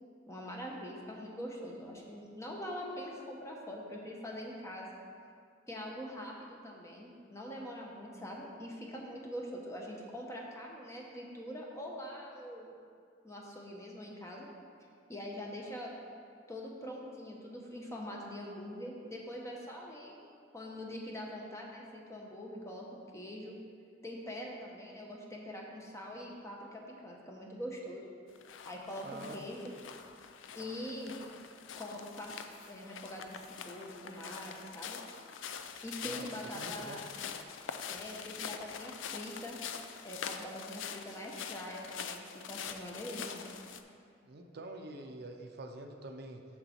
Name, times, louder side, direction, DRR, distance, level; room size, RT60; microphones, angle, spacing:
voice 1, 0.3-5.0 5.7-12.7 13.2-14.5 15.1-15.9 16.5-20.2 20.5-22.9 23.1-23.6 24.0-28.1 28.6-29.1 29.3-29.6 30.6-31.2 31.8-35.0 35.8-37.0 37.9-39.6 40.0-43.4, equal, 15° left, -1 dB, 0.9 m, -43 dB
sound 1, 28.4-43.8, left 7 dB, 90° left, 0.4 m, -44 dB
voice 2, 29.0-29.5 36.0-36.3 36.5-37.0 44.3-46.4, right 2 dB, 55° right, 4 dB, 0.5 m, -46 dB
6.8 x 6.6 x 4.3 m, 2.2 s
head